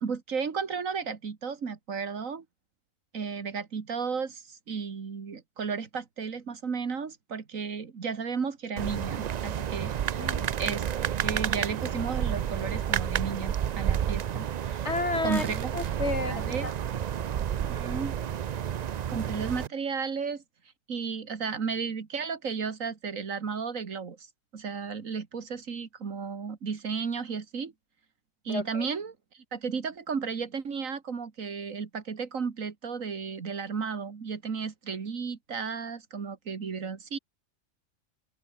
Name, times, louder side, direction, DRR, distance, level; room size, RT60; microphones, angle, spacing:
voice 1, 0.0-2.4 3.1-10.3 10.6-14.9 15.2-15.7 16.3-16.7 17.7-18.2 19.1-20.4 20.9-24.3 24.5-27.7 28.5-37.2, right 5 dB, 90° right, 2.2 m, -34 dB
sound 1, 8.8-19.7, right 9 dB, 70° right, 0.4 m, -30 dB
voice 2, 10.1-10.6 14.8-15.4 15.7-16.7 28.5-28.9, left 3 dB, 60° left, 3.4 m, -31 dB
omnidirectional pair, 1.3 m